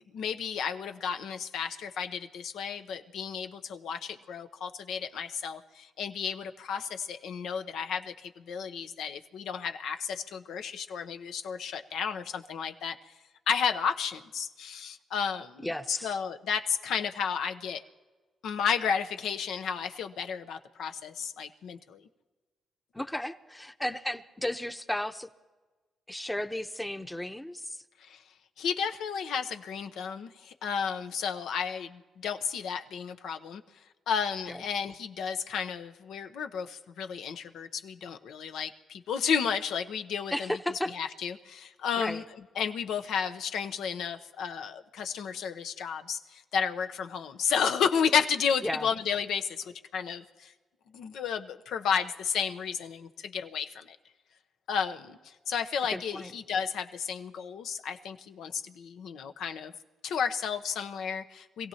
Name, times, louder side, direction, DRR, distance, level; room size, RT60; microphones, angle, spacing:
voice 1, 0.0-13.1 13.5-17.8 18.4-22.0 28.0-28.2 28.6-33.6 34.1-40.5 40.9-42.2 42.5-50.5 50.9-54.0 54.7-59.7 60.0-61.7, left 7 dB, 80° left, 7 dB, 0.8 m, -32 dB
voice 2, 15.6-16.2 22.9-25.3 26.1-27.8 34.5-34.6 40.3-40.9 42.0-42.2 48.6-48.9 55.9-56.3, left 1 dB, 10° left, 9 dB, 0.8 m, -34 dB
26.0 x 16.5 x 2.9 m, 1.3 s
cardioid pair, 70°, 0 cm